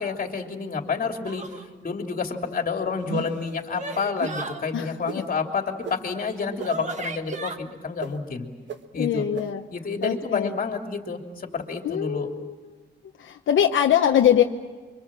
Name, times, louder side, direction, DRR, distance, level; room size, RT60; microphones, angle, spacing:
voice 1, 0.0-1.4 1.8-8.5 8.9-9.3 9.7-12.3, left 5 dB, 45° left, 3 dB, 3.0 m, -29 dB
sound 1, 1.2-1.7 3.1-4.6 6.1-6.2 6.6-7.6, right 3 dB, 40° right, 1.8 m, -36 dB
sound 2, 3.0-3.5 4.2-4.4 5.1-5.2 5.8-6.0 6.6-6.7 7.3-7.4 8.0-8.1 8.7-8.8 9.4-9.5 10.0-10.1, right 7 dB, 70° right, 1.6 m, -33 dB
voice 2, 9.0-9.7 10.0-10.5 11.8-12.5 13.2-14.4, left 10 dB, 85° left, 4 dB, 1.1 m, -22 dB
29.0 x 24.5 x 7.5 m, 1.3 s
wide cardioid pair, 140°, 19 cm